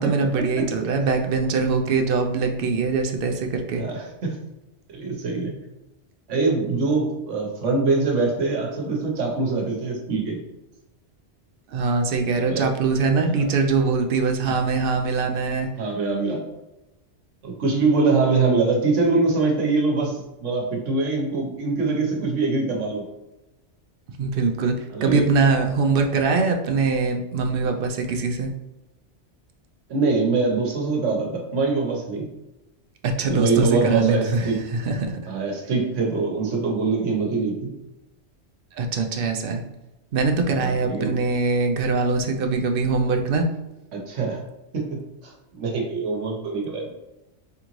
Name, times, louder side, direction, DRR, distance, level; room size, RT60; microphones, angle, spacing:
voice 1, 0.0-3.8 11.7-15.7 24.2-28.5 33.0-35.2 38.8-39.6 40.1-43.5, right 4 dB, 60° right, 5 dB, 0.6 m, -22 dB
voice 2, 3.8-4.3 4.9-5.6 6.3-10.4 12.5-12.7 13.2-13.4 15.8-16.4 17.4-23.0 24.9-25.2 29.9-32.2 33.2-34.6 35.3-37.7 40.6-41.1 43.9-44.4 44.7-45.0 45.2-46.9, right 3 dB, 90° right, 1 dB, 1.2 m, -23 dB
3.7 x 3.4 x 3.0 m, 0.98 s
omnidirectional pair, 1.2 m